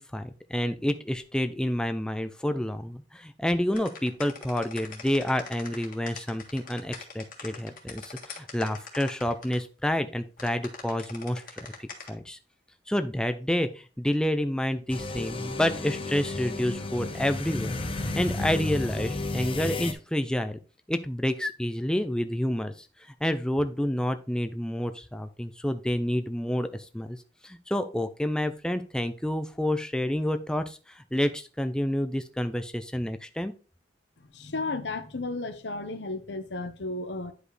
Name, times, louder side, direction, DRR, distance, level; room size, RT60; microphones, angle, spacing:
voice 1, 0.0-12.4 12.9-20.6 20.9-22.9 23.2-27.2 27.4-33.5, left 1 dB, 5° left, 0.4 m, -29 dB
sound 1, 3.7-9.6 10.4-12.1, left 5 dB, 50° left, 1.7 m, -42 dB
sound 2, 14.9-19.9, left 2 dB, 30° left, 0.9 m, -32 dB
voice 2, 34.2-37.3, left 2 dB, 75° left, 1.0 m, -34 dB
9.9 x 5.1 x 3.2 m
head